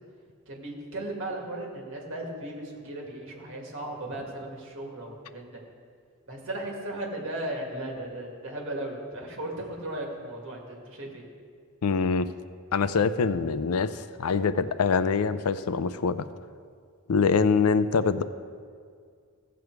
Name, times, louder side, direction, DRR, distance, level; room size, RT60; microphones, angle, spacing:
voice 1, 0.5-5.6 6.3-11.2, right 1 dB, 60° right, -1 dB, 2.1 m, -36 dB
voice 2, 11.8-12.3 12.7-16.3 17.1-18.2, left 5 dB, 90° left, 13 dB, 0.5 m, -24 dB
15.5 x 7.0 x 4.7 m, 2.1 s
head